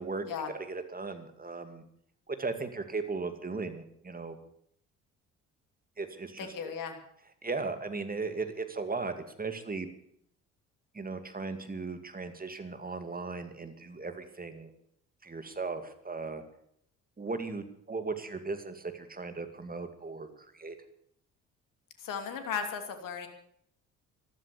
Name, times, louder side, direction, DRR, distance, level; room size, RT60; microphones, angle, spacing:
voice 1, 0.6-1.8 2.3-4.4 6.0-6.7 7.4-9.9 10.9-14.7 15.2-16.4 17.2-20.8, right 4 dB, 25° right, 8 dB, 2.3 m, -37 dB
voice 2, 6.4-7.0 22.0-23.3, left 6 dB, 55° left, 6 dB, 2.9 m, -36 dB
14.5 x 12.5 x 6.9 m, 0.69 s
hypercardioid pair, 50°, 38 cm